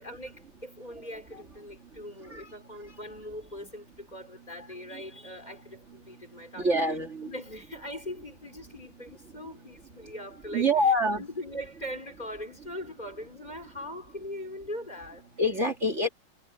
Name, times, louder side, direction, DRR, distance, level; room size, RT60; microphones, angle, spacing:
voice 1, 0.0-6.8 7.2-10.7 11.2-15.3 16.0-16.1, left 1 dB, 20° left, 4.7 m, -41 dB
voice 2, 6.6-7.3 10.5-11.3 15.4-16.1, equal, 40° right, 2.4 m, -26 dB
omnidirectional pair, 2.0 m